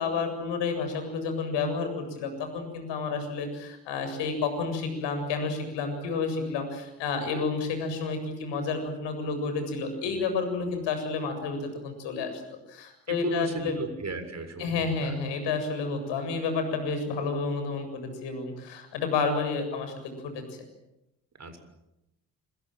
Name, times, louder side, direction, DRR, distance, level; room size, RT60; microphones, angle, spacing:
voice 1, 0.0-12.4 12.7-13.8 14.6-20.1, left 4 dB, 60° left, 7 dB, 7.5 m, -30 dB
voice 2, 13.1-15.2 21.4-21.6, right 2 dB, 35° right, 8 dB, 6.9 m, -34 dB
27.0 x 26.0 x 7.7 m, 0.91 s
figure-of-eight pair, 50°, 47 cm